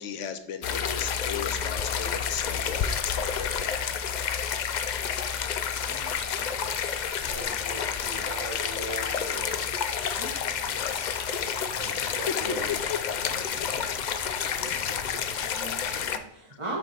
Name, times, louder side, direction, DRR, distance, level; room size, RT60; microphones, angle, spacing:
voice 1, 0.0-4.1 10.7-11.3 11.9-13.0 16.5-16.6, left 8 dB, 70° left, 9 dB, 1.0 m, -36 dB
sound 1, 0.6-16.2, left 7 dB, 90° left, 0.4 m, -30 dB
voice 2, 5.9-6.8 10.2-10.8 15.1-16.8, right 2 dB, 25° right, -3 dB, 0.9 m, -40 dB
voice 3, 6.4-6.7 7.2-9.6 11.8-12.8 13.5-13.6 14.0-14.3 14.6-15.0 15.4-15.5 15.9-16.0, right 2 dB, 75° right, 3 dB, 1.4 m, -41 dB
8.0 x 3.0 x 5.6 m, 0.75 s
omnidirectional pair, 1.3 m